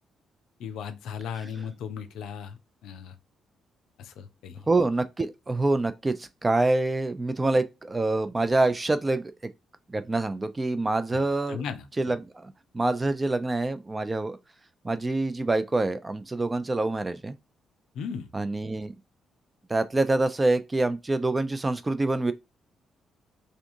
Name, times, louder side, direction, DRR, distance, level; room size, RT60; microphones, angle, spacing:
voice 1, 0.6-3.1 4.0-4.6 11.1-11.8 17.9-18.3, left 7 dB, 60° left, 0.5 m, -37 dB
voice 2, 4.7-9.5 9.9-11.6 12.0-14.4 14.8-17.4 18.3-18.9 19.7-22.3, right 2 dB, 25° right, 0.4 m, -26 dB
3.4 x 2.7 x 2.6 m
figure-of-eight pair, 40°, 0 cm